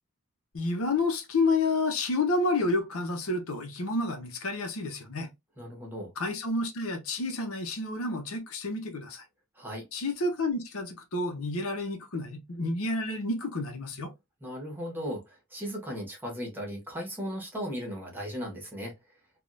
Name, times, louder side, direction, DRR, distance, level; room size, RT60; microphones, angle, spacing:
voice 1, 0.5-5.3 6.2-9.2 9.9-14.1, left 2 dB, 70° left, 0.7 m, -30 dB
voice 2, 5.6-6.1 9.6-9.9 14.4-18.9, equal, 10° right, 1.1 m, -36 dB
3.5 x 2.3 x 2.5 m
head